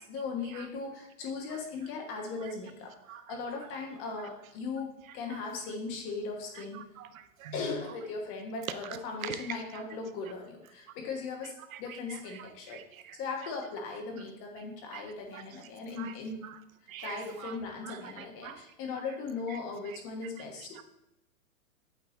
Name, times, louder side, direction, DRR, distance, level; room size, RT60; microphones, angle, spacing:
voice 1, 0.0-6.8 7.5-11.5 11.8-12.8 13.2-16.4 17.0-20.8, left 4 dB, 30° left, 1 dB, 1.2 m, -38 dB
voice 2, 6.7-7.1 7.4-7.5 9.2-9.4 11.7-13.2 14.9-15.0 15.3-15.4 16.0-16.1 16.4-16.6 16.9-17.5 17.8-18.6 20.8-20.9, right 10 dB, 65° right, 11 dB, 0.7 m, -44 dB
8.4 x 3.7 x 3.8 m, 0.86 s
hypercardioid pair, 135°, 44 cm